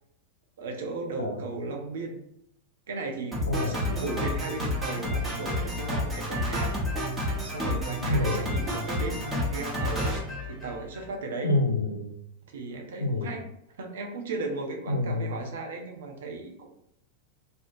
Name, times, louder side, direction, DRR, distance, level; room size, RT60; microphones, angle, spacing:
voice 1, 0.6-2.2 2.9-6.8 7.1-9.3 9.5-10.2 10.5-11.5 12.5-13.4 13.8-16.7, right 3 dB, 60° right, 3 dB, 0.5 m, -36 dB
Drum kit, 3.3-11.1, left 1 dB, 10° right, 0.9 m, -30 dB
voice 2, 3.5-3.9 8.1-8.5 11.4-12.1 13.0-13.3 14.9-15.3, left 2 dB, 75° left, 5 dB, 0.4 m, -27 dB
2.5 x 2.0 x 2.9 m, 0.75 s
figure-of-eight pair, 90°, 0 cm